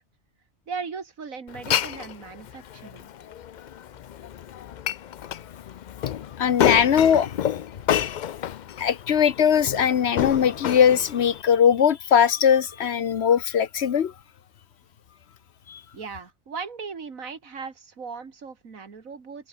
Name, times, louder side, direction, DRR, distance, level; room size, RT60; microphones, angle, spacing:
voice 1, 0.7-3.1 15.9-19.5, right 5 dB, 85° right, 2.5 m, -38 dB
Glass, 1.5-11.4, left 10 dB, 80° left, 0.4 m, -29 dB
voice 2, 6.4-7.3 8.8-14.1 15.7-15.8, left 8 dB, 60° left, 1.0 m, -20 dB
omnidirectional pair, 1.4 m